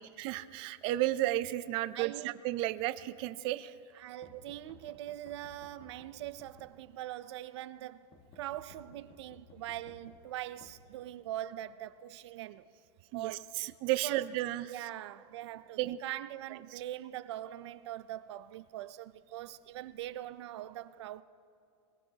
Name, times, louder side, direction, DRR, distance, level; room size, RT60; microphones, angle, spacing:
voice 1, 0.0-3.7 4.3-4.4 13.1-14.7 15.8-16.0, right 15 dB, 40° right, 0.5 m, -33 dB
voice 2, 1.9-2.3 3.9-8.1 8.4-12.7 13.1-13.5 14.0-14.3 14.6-21.2, right 13 dB, 80° right, 0.6 m, -42 dB
sound 1, 4.2-7.2 8.1-11.4, left 3 dB, 40° left, 1.5 m, -58 dB
22.0 x 21.5 x 2.9 m
supercardioid pair, 170°, 14 cm